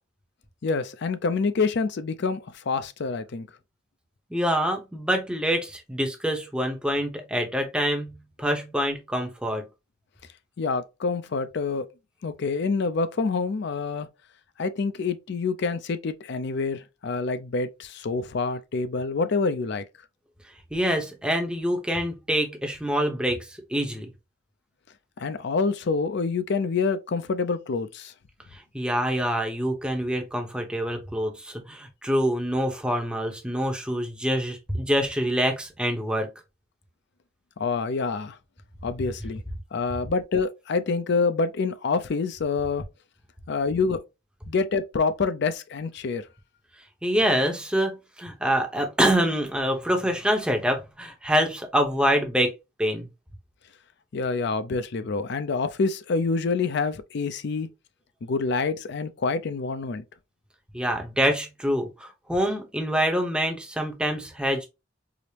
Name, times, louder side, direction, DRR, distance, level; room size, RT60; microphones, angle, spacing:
voice 1, 0.6-3.5 10.6-11.9 12.2-14.1 14.6-19.8 25.2-28.1 37.6-38.4 38.8-39.4 39.7-42.8 43.5-44.0 44.5-46.2 54.1-57.7 58.2-60.0, left 4 dB, 60° left, 0.5 m, -27 dB
voice 2, 4.3-9.6 20.7-23.4 23.7-24.1 28.7-36.3 47.0-52.5 52.8-53.1 60.7-64.7, equal, 5° right, 0.7 m, -25 dB
4.9 x 2.0 x 2.8 m
head